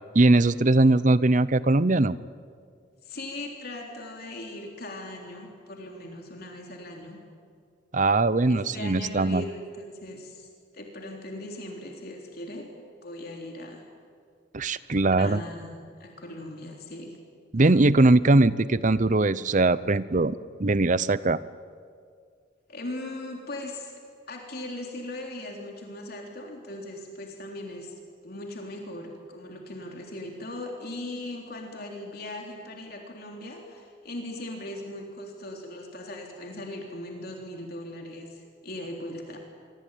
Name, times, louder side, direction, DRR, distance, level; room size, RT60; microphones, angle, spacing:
voice 1, 0.1-2.2 7.9-9.5 14.5-15.4 17.5-21.4, right 2 dB, 40° right, 17 dB, 0.7 m, -21 dB
voice 2, 3.0-7.2 8.5-12.7 13.0-13.8 15.1-15.7 16.0-17.2 22.7-23.9 24.3-27.9 28.2-39.4, left 1 dB, 50° left, 1 dB, 3.6 m, -39 dB
26.5 x 24.5 x 9.3 m, 2.2 s
head